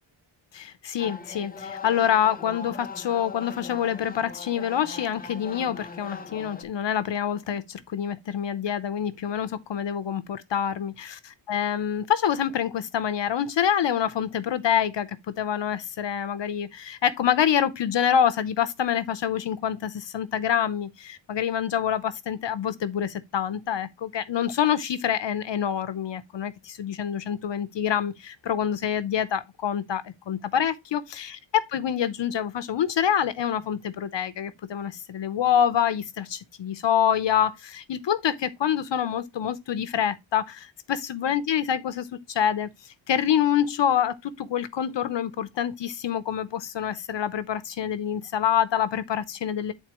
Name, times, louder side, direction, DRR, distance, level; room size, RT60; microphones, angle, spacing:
voice 1, 0.5-49.7, left 9 dB, 60° left, 0.8 m, -26 dB
sound 1, 1.0-6.6, left 4 dB, 20° left, 0.6 m, -40 dB
10.0 x 4.0 x 2.9 m
wide cardioid pair, 170°, 49 cm